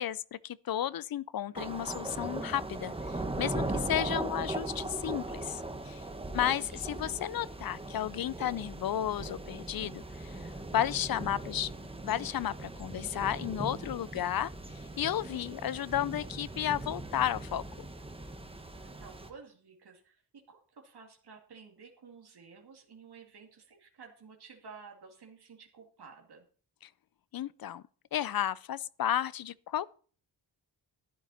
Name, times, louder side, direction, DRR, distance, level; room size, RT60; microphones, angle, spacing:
voice 1, 0.0-6.0 6.3-11.7 12.0-14.5 15.0-17.6 27.3-27.8 28.1-29.9, left 11 dB, 55° left, 0.5 m, -33 dB
sound 1, 1.6-19.3, right 2 dB, 15° right, 1.3 m, -39 dB
voice 2, 6.1-6.8 18.4-26.4, right 5 dB, 65° right, 2.4 m, -53 dB
12.0 x 11.0 x 4.2 m
wide cardioid pair, 135°, 43 cm